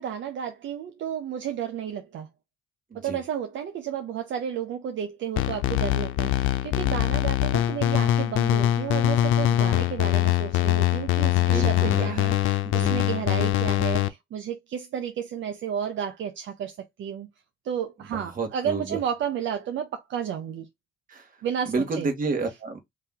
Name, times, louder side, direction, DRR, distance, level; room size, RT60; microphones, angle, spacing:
voice 1, 0.0-2.3 2.9-17.3 17.6-20.7 21.4-22.1, right 8 dB, 70° right, 0.7 m, -32 dB
voice 2, 2.9-3.2 11.4-12.4 12.6-13.0 18.1-19.0 21.1-21.3 21.6-22.8, right 4 dB, 45° right, 1.7 m, -30 dB
sound 1, 5.4-14.1, left 13 dB, 90° left, 0.5 m, -23 dB
3.2 x 2.9 x 3.7 m
cardioid pair, 90°, 20 cm